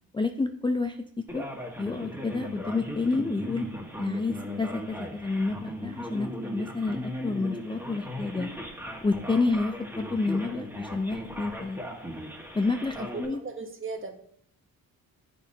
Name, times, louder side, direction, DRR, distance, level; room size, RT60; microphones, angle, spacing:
voice 1, 0.1-1.0 1.3-1.4 1.8-3.7 4.0-8.5 9.0-11.8 12.5-13.4, left 3 dB, 15° left, 6 dB, 0.4 m, -29 dB
Male speech man speaking, 1.3-13.3, equal, 5° right, 1.5 m, -38 dB
voice 2, 13.0-14.1, right 4 dB, 35° right, 5 dB, 1.0 m, -37 dB
8.2 x 5.4 x 2.8 m, 0.65 s
cardioid pair, 65°, 37 cm